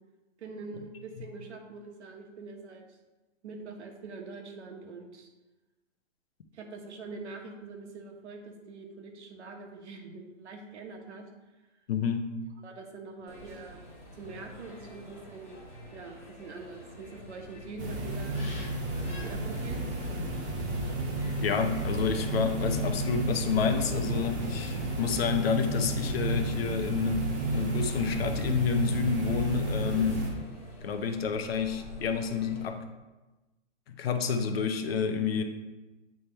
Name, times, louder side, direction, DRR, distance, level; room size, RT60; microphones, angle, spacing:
voice 1, 0.4-3.0 3.4-5.3 6.5-11.2 12.6-13.8 14.1-15.7 15.9-18.5 19.0-19.9 29.8-30.0, right 3 dB, 60° right, 3 dB, 1.3 m, -44 dB
voice 2, 11.9-12.3 21.4-30.2 30.8-32.8 33.9-35.4, left 6 dB, 50° left, 7 dB, 0.7 m, -29 dB
sound 1, 13.3-32.7, left 1 dB, 15° left, 1.7 m, -48 dB
sound 2, 17.8-30.3, right 1 dB, 15° right, 0.5 m, -32 dB
8.6 x 3.5 x 4.4 m, 1.1 s
hypercardioid pair, 155°, 38 cm